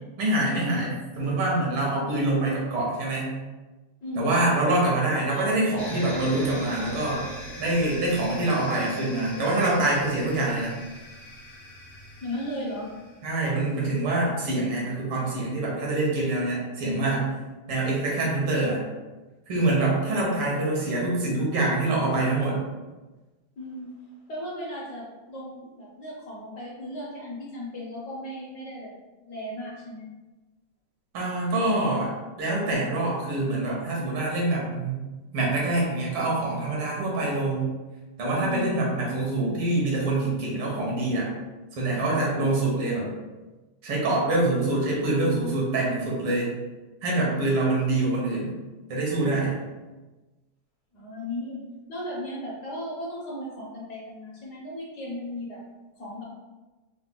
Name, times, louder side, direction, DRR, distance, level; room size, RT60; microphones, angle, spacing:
voice 1, 0.2-3.3 4.2-7.2 7.6-10.8 13.2-17.2 17.7-18.8 19.5-22.6 31.1-32.1 32.4-35.0 35.3-37.7 38.2-41.3 41.8-43.1 43.8-46.5 47.0-48.5 48.9-49.5, right 2 dB, 85° right, -4 dB, 2.0 m, -25 dB
voice 2, 4.0-4.3 12.2-12.9 18.2-18.6 20.1-20.3 23.6-23.9 24.3-28.9 29.3-30.1 38.4-38.8 50.9-51.6 51.9-55.6 56.0-56.2, left 1 dB, 65° left, -4 dB, 1.1 m, -36 dB
Wind instrument woodwind instrument, 5.3-9.9, left 1 dB, 85° left, 1.5 m, -42 dB
sound 1, 5.8-13.4, left 1 dB, 45° left, 0.7 m, -41 dB
4.6 x 2.0 x 3.6 m, 1.2 s
omnidirectional pair, 2.4 m